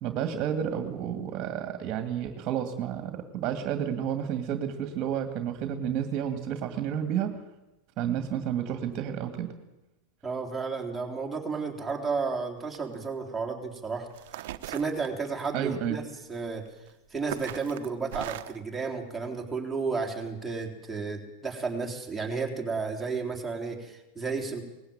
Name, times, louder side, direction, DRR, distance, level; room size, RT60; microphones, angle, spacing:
voice 1, 0.0-7.4 8.0-9.5 15.5-16.0, right 9 dB, 40° right, 7 dB, 2.2 m, -31 dB
voice 2, 10.2-14.1 14.7-16.0 16.3-16.7 17.1-24.6, right 4 dB, 5° right, 0 dB, 3.8 m, -32 dB
sound 1, 12.6-12.9 13.8-13.9 14.1-15.6 16.7-16.9 17.3-18.6, right 14 dB, 70° right, 1.0 m, -38 dB
19.5 x 15.5 x 8.9 m, 0.96 s
supercardioid pair, 130°, 0 cm